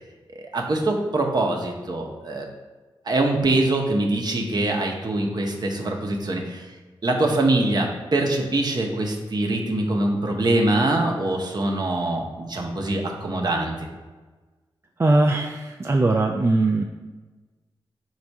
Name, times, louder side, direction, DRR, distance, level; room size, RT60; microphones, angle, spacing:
voice 1, 0.3-2.5 3.1-6.7 7.0-13.9, right 2 dB, 50° right, 1 dB, 0.8 m, -23 dB
voice 2, 15.0-16.8, right 2 dB, 30° right, 2 dB, 0.3 m, -20 dB
4.1 x 2.4 x 4.5 m, 1.3 s
cardioid pair, 45°, 9 cm